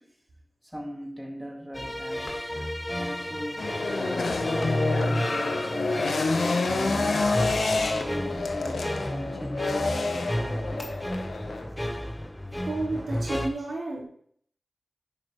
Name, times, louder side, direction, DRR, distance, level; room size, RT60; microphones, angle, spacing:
voice 1, 0.7-2.5 3.0-3.7 4.0-4.3 4.9-7.2 7.8-10.9, equal, 5° right, 0 dB, 1.7 m, -39 dB
sound 1, 1.7-13.5, equal, 10° left, 0.9 m, -32 dB
sound 2, 2.0-9.7 10.1-12.8, left 1 dB, 40° left, 1.7 m, -49 dB
sound 3, 3.6-11.6, left 3 dB, 90° left, 0.8 m, -28 dB
voice 2, 12.7-14.0, right 2 dB, 85° right, -5 dB, 3.9 m, -31 dB
10.0 x 7.8 x 3.1 m, 0.63 s
wide cardioid pair, 60°, 0 cm